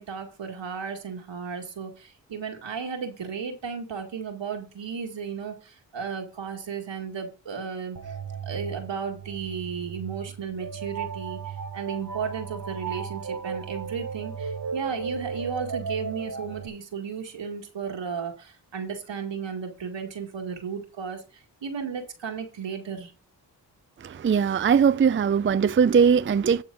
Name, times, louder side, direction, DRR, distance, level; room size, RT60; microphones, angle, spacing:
voice 1, 0.0-8.1 8.4-23.1, right 6 dB, 85° right, 2.1 m, -34 dB
sound 1, 8.0-16.7, right 6 dB, 50° right, 1.1 m, -35 dB
voice 2, 24.0-26.6, right 6 dB, 30° right, 0.5 m, -20 dB
11.5 x 4.0 x 6.1 m
cardioid pair, 45°, 43 cm